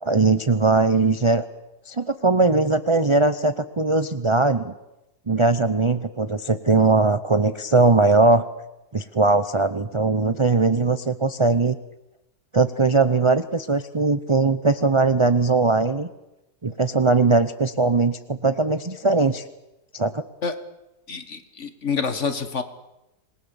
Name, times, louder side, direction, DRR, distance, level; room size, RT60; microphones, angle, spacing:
voice 1, 0.0-1.5 1.9-4.7 5.3-8.4 8.9-11.8 12.5-16.1 16.6-19.4 19.9-20.2, right 3 dB, 30° right, 10 dB, 0.6 m, -20 dB
voice 2, 21.1-22.6, left 5 dB, 50° left, 10 dB, 1.8 m, -27 dB
27.0 x 21.0 x 7.0 m, 0.94 s
omnidirectional pair, 1.7 m